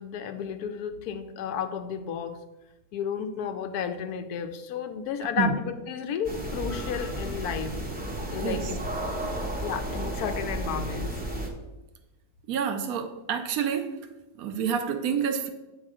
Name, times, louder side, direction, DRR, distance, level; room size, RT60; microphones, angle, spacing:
voice 1, 0.0-2.4 2.9-7.8 8.3-8.8 9.6-11.2, left 7 dB, 80° left, 9 dB, 1.1 m, -32 dB
sound 1, 6.2-11.5, right 1 dB, 10° right, 0.5 m, -33 dB
voice 2, 12.5-13.9 14.4-15.5, right 7 dB, 75° right, 7 dB, 1.1 m, -28 dB
7.5 x 3.5 x 4.8 m, 1.0 s
omnidirectional pair, 1.6 m